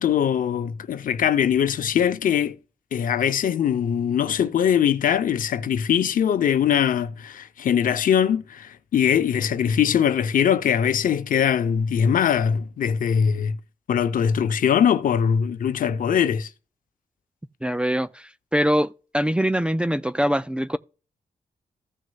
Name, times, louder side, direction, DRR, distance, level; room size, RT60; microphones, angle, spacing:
voice 1, 0.0-2.5 2.9-13.6 13.9-16.5, left 8 dB, 80° left, 0.7 m, -21 dB
voice 2, 17.6-20.8, equal, 5° right, 0.3 m, -23 dB
15.5 x 6.3 x 2.4 m
wide cardioid pair, 125°, 14 cm